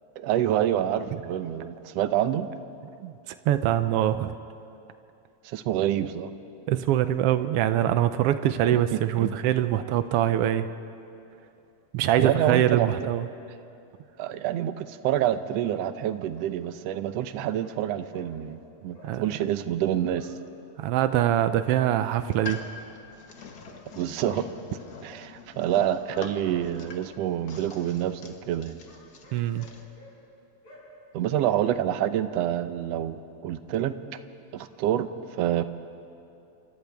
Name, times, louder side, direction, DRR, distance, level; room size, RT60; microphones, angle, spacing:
voice 1, 0.2-2.5 5.4-6.3 8.9-9.3 12.2-12.9 14.2-20.3 24.0-24.5 25.0-28.8 31.1-34.0 34.5-35.1 35.4-35.6, right 11 dB, 70° right, 11 dB, 1.7 m, -27 dB
voice 2, 3.0-4.3 6.7-10.7 11.9-13.3 19.0-19.2 20.8-22.6 29.3-29.7, right 11 dB, 85° right, 11 dB, 1.3 m, -24 dB
sound 1, 17.3-17.8 18.1-18.3 18.9-19.1 20.1-20.3 21.0-21.2 22.5-22.6 23.4-23.8 26.1-27.0 27.7-27.9 28.8-30.1 30.6-30.8 31.3-31.5, left 2 dB, 70° left, 5.9 m, -52 dB
sound 2, 22.2-29.8, left 5 dB, 50° left, 1.3 m, -44 dB
29.5 x 26.0 x 3.5 m, 2.6 s
omnidirectional pair, 3.4 m